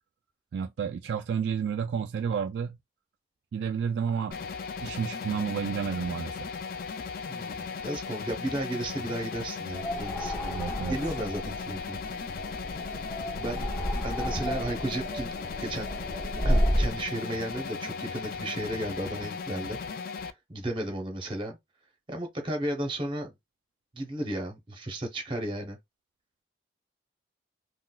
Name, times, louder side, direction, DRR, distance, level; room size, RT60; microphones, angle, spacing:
voice 1, 0.5-2.8 3.5-4.5 4.8-6.6 10.5-11.0, right 7 dB, 75° right, 0.3 m, -31 dB
sound 1, 4.3-20.3, left 5 dB, 50° left, 0.3 m, -37 dB
voice 2, 7.3-12.0 13.3-13.7 14.0-15.3 15.6-15.9 16.4-19.8 20.5-21.6 22.1-23.3 23.9-25.8, right 1 dB, 25° right, 0.8 m, -34 dB
sound 2, 9.7-17.0, equal, 15° left, 0.7 m, -31 dB
3.8 x 2.2 x 2.3 m
head